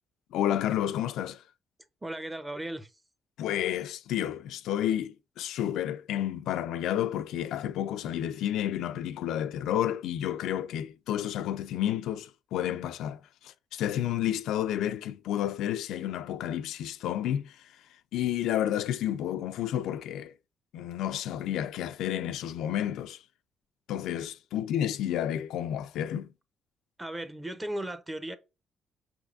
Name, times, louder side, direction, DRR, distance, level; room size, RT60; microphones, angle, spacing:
voice 1, 0.3-1.4 3.4-17.7 18.1-20.3 20.7-23.2 23.9-26.3, left 11 dB, 85° left, 0.3 m, -31 dB
voice 2, 2.0-3.0 27.0-28.4, right 1 dB, 15° right, 0.6 m, -36 dB
5.5 x 3.4 x 2.4 m
cardioid pair, 90°, 0 cm